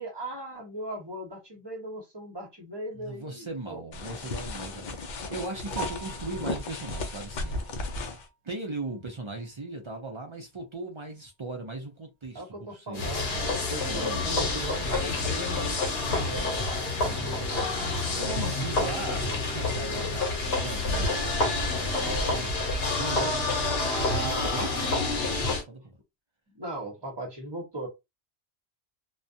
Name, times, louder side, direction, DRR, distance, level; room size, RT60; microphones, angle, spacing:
voice 1, 0.0-3.8 12.3-15.8 16.1-17.7 18.6-18.9 21.9-22.6 26.5-27.9, right 1 dB, 25° right, 0.9 m, -39 dB
voice 2, 2.9-7.7 8.4-14.2 17.1-17.3 18.2-21.2 23.0-26.0, right 2 dB, 40° right, 0.4 m, -39 dB
sound 1, 3.9-8.2, left 3 dB, 55° left, 0.6 m, -35 dB
Piano, 5.7-9.7 10.1-10.2 10.7-10.8 11.1-11.2 14.3-14.4 22.9-23.1, right 6 dB, 80° right, 0.9 m, -45 dB
sound 2, 12.9-25.6, left 2 dB, 70° left, 1.0 m, -28 dB
2.3 x 2.1 x 2.6 m
omnidirectional pair, 1.1 m